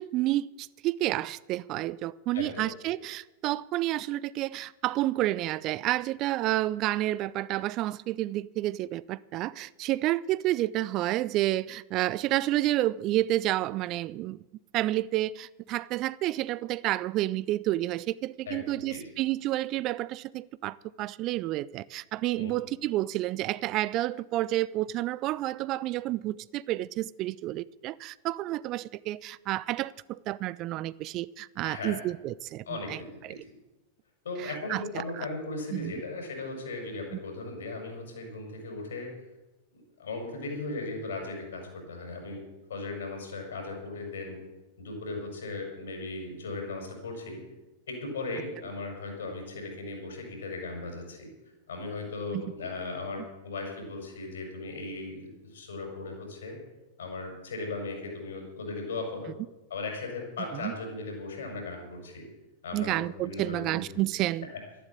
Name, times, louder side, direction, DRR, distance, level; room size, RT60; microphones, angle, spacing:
voice 1, 0.0-14.4 14.7-33.4 34.4-35.3 35.7-35.9 52.3-52.4 60.6-60.7 62.7-64.5, right 16 dB, 40° right, 0.4 m, -30 dB
voice 2, 18.5-19.0 22.4-22.5 31.6-32.1 32.7-33.5 34.2-39.1 40.0-42.4 42.7-44.4 44.8-47.4 47.9-51.3 51.7-56.6 57.0-59.3 59.7-62.3 62.6-64.0 64.5-64.6, left 3 dB, 65° left, 5.7 m, -37 dB
12.5 x 11.0 x 8.6 m
figure-of-eight pair, 90°, 0 cm